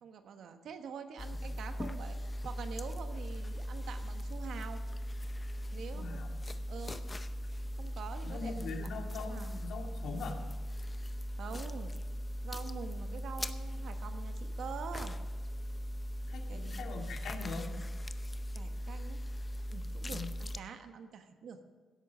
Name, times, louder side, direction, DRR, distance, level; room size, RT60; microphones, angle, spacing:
voice 1, 0.0-2.2 2.4-4.8 5.7-6.2 6.7-7.0 7.8-8.5 9.2-9.5 11.4-11.9 12.4-15.2 16.5-16.7 18.5-19.2 19.7-21.6, right 6 dB, 70° right, 7 dB, 1.2 m, -45 dB
sound 1, 1.2-20.6, equal, 20° left, 0.7 m, -39 dB
voice 2, 5.9-6.3 8.2-10.4 16.3-17.7 20.1-20.3, left 4 dB, 75° left, 2 dB, 2.1 m, -42 dB
16.5 x 8.4 x 6.2 m, 1.3 s
cardioid pair, 90°, 0 cm